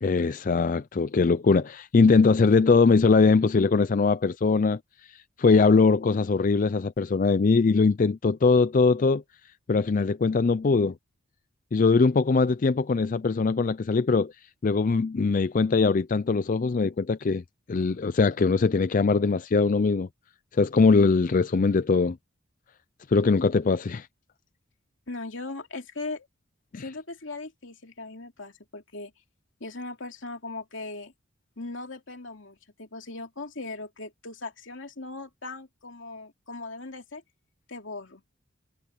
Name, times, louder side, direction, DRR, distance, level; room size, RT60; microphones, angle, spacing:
voice 1, 0.0-9.2 9.7-10.9 11.7-14.3 14.6-17.4 17.7-20.1 20.5-22.2 23.1-24.1 26.7-26.8, left 4 dB, 40° left, 0.4 m, -21 dB
voice 2, 25.1-26.3 26.7-29.1 29.6-31.1 31.6-37.2 37.7-38.2, left 3 dB, 70° left, 2.9 m, -39 dB
head